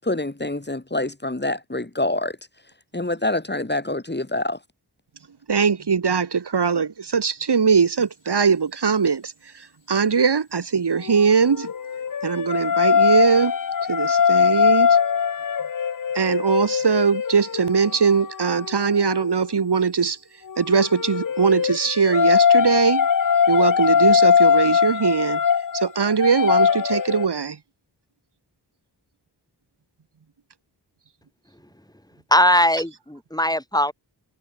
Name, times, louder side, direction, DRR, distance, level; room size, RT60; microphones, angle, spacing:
voice 1, 0.0-2.4 2.9-4.6, left 2 dB, 25° left, 6.3 m, -26 dB
voice 2, 5.5-11.7 12.2-13.5 13.9-15.0 16.1-20.2 20.6-23.1 23.5-25.4 25.7-27.6, right 6 dB, 70° right, 2.3 m, -21 dB
sound 1, 11.1-19.3 20.5-27.3, left 7 dB, 50° left, 0.8 m, -21 dB
voice 3, 32.3-33.9, left 1 dB, 10° left, 7.0 m, -19 dB
wide cardioid pair, 70°, 42 cm